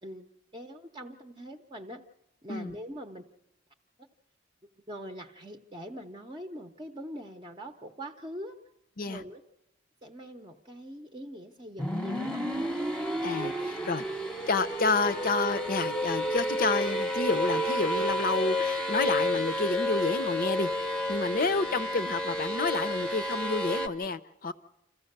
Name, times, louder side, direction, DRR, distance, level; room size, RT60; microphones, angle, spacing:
voice 1, 0.0-2.0 2.4-3.2 4.9-8.6 9.0-9.4 10.0-12.4 13.4-13.9 15.0-15.3, equal, 25° right, 4 dB, 0.8 m, -43 dB
sound 1, 11.8-23.9, equal, 5° left, 0.8 m, -30 dB
voice 2, 14.5-24.5, left 3 dB, 50° left, 13 dB, 0.6 m, -29 dB
27.0 x 14.5 x 6.6 m, 0.89 s
head